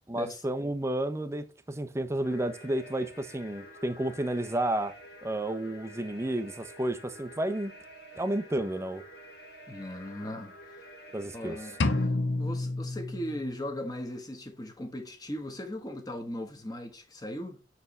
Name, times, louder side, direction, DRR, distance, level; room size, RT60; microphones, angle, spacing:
voice 1, 0.1-7.7 8.2-9.0 11.1-11.6, right 1 dB, 15° right, 0.6 m, -31 dB
sound 1, 2.2-12.1, equal, 60° left, 1.8 m, -49 dB
voice 2, 9.7-10.5 11.2-17.6, left 1 dB, 20° left, 1.1 m, -38 dB
sound 2, 11.8-13.8, left 2 dB, 75° left, 0.7 m, -29 dB
6.9 x 4.6 x 3.2 m
head